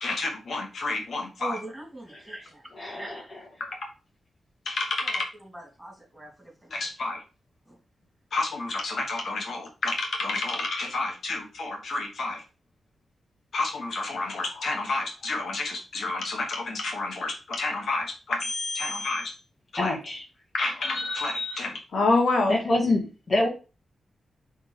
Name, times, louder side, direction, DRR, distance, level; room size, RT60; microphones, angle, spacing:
voice 1, 0.0-1.6 3.6-3.7 4.6-5.2 6.7-7.2 8.3-12.4 13.5-19.3 19.7-20.0 20.5-22.6, left 3 dB, 75° left, 2 dB, 1.4 m, -29 dB
voice 2, 1.4-2.5 2.9-3.3 5.0-6.9 7.6-7.8, right 1 dB, 10° right, -1 dB, 3.0 m, -41 dB
voice 3, 2.8-3.2 19.8-20.2 22.5-23.5, left 2 dB, 45° left, -1 dB, 1.9 m, -25 dB
5.3 x 3.6 x 4.9 m, 0.32 s
cardioid pair, 85°, 0 cm